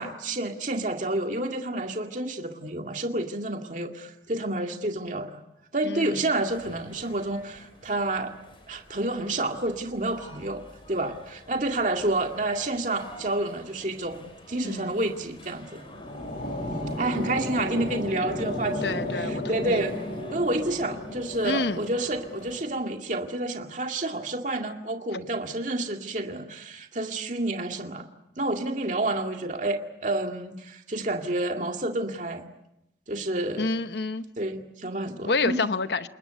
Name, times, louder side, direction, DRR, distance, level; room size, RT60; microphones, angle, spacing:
voice 1, 0.0-5.4 5.7-8.3 8.7-10.6 10.9-15.8 17.0-20.0 20.3-28.1 28.4-32.5 33.1-33.7 34.4-35.7, right 2 dB, 45° right, 3 dB, 2.1 m, -29 dB
voice 2, 5.8-6.2 14.6-14.9 18.8-19.8 21.4-21.8 25.1-25.2 33.6-34.2 35.3-36.1, left 3 dB, 75° left, 11 dB, 0.9 m, -28 dB
sound 1, 6.5-22.6, left 1 dB, 30° left, 6.1 m, -49 dB
sound 2, 15.6-22.8, left 1 dB, 45° left, 5.1 m, -34 dB
28.0 x 21.0 x 8.2 m, 0.85 s
head